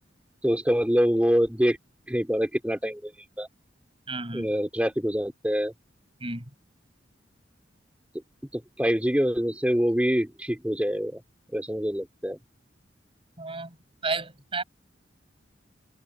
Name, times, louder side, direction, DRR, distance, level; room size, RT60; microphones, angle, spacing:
voice 1, 0.4-1.8 2.1-3.1 3.4-3.5 4.3-5.7 8.5-11.2 11.5-12.4, equal, 5° right, 3.2 m, -25 dB
voice 2, 4.1-4.5 6.2-6.4 13.4-13.7 14.0-14.6, right 3 dB, 30° right, 5.6 m, -31 dB
head